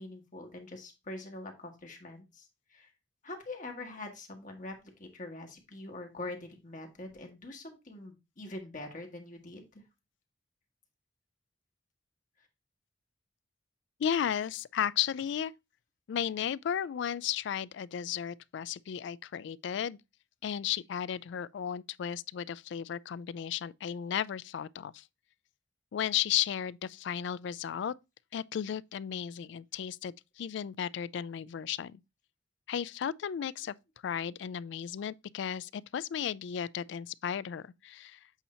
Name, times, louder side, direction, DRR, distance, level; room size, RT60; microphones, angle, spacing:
voice 1, 0.0-2.9 3.2-9.8, left 2 dB, 40° left, 1.5 m, -44 dB
voice 2, 14.0-15.5 16.1-20.0 20.4-25.0 25.9-27.9 28.3-32.0 32.7-33.7 34.0-38.2, left 9 dB, 65° left, 0.3 m, -34 dB
8.1 x 2.8 x 4.3 m
head